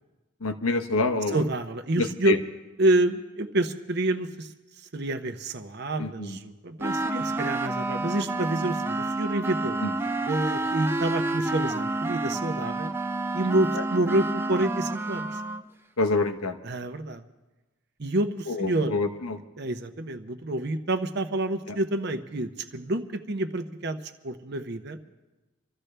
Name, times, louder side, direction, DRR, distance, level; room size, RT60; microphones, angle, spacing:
voice 1, 0.4-1.5 2.0-2.4 6.0-6.4 9.8-10.0 13.7-13.8 16.0-16.6 18.5-19.4 21.7-21.8, left 3 dB, 85° left, 6 dB, 1.0 m, -27 dB
voice 2, 1.3-2.4 2.8-4.5 4.9-9.8 10.3-12.9 13.3-15.4 16.6-17.2 18.0-19.0 19.6-25.0, right 1 dB, 50° right, 8 dB, 0.8 m, -28 dB
sound 1, 6.8-15.6, right 2 dB, 10° right, 0.4 m, -29 dB
25.5 x 13.5 x 3.4 m, 1.1 s
head